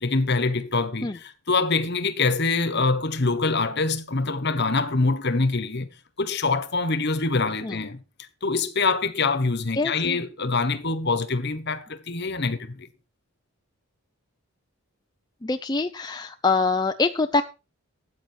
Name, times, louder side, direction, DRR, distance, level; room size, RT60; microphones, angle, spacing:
voice 1, 0.0-5.9 6.2-8.0 8.4-12.9, left 3 dB, 50° left, 1.3 m, -25 dB
voice 2, 9.8-10.2 15.4-17.4, left 3 dB, 20° left, 0.5 m, -24 dB
13.5 x 8.9 x 4.5 m
head